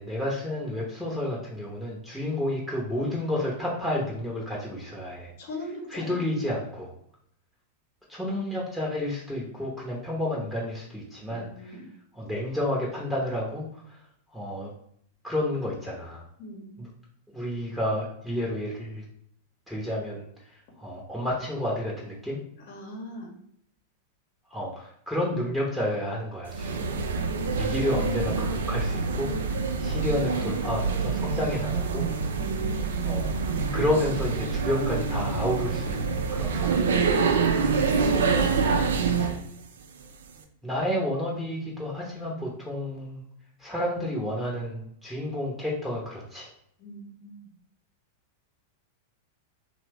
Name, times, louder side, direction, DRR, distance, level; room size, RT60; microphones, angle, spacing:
voice 1, 0.0-5.3 5.9-6.9 8.1-11.8 12.1-14.0 14.3-14.7 15.2-16.2 16.8-16.9 17.3-19.0 19.7-20.2 20.8-22.4 24.5-27.1 27.6-29.5 29.8-32.1 33.0-36.8 40.6-43.2 43.6-46.5, left 1 dB, ahead, -4 dB, 0.8 m, -30 dB
voice 2, 5.4-6.2 11.2-11.9 16.4-16.7 22.7-23.3 32.4-32.7 37.9-38.9 46.8-47.5, left 1 dB, 60° left, 0 dB, 0.9 m, -39 dB
sound 1, 26.5-39.4, right 5 dB, 80° right, 0.4 m, -26 dB
2.7 x 2.1 x 3.3 m, 0.69 s
hypercardioid pair, 105°, 0 cm